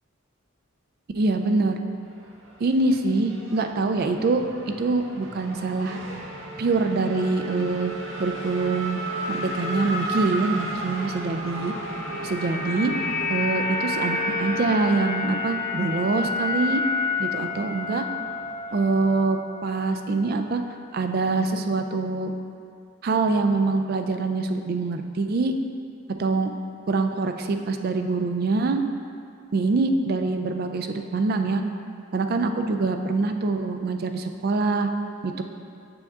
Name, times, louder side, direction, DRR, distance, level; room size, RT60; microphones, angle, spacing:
voice 1, 1.1-1.8 2.6-4.4 4.7-6.0 6.6-7.9 8.2-9.0 9.3-11.7 12.2-12.9 13.3-16.8 17.2-18.0 18.7-20.6 20.9-22.3 23.0-25.5 26.2-26.5 26.9-28.8 29.5-31.6 32.1-34.9 35.2-35.4, right 3 dB, 45° right, 6 dB, 0.3 m, -24 dB
Race car auto racing / Accelerating revving vroom, 2.0-19.0, right 1 dB, 65° right, 0.8 m, -36 dB
sound 1, 11.6-19.9 20.2-20.4, left 4 dB, 35° left, 0.4 m, -29 dB
6.8 x 6.5 x 2.4 m, 2.4 s
head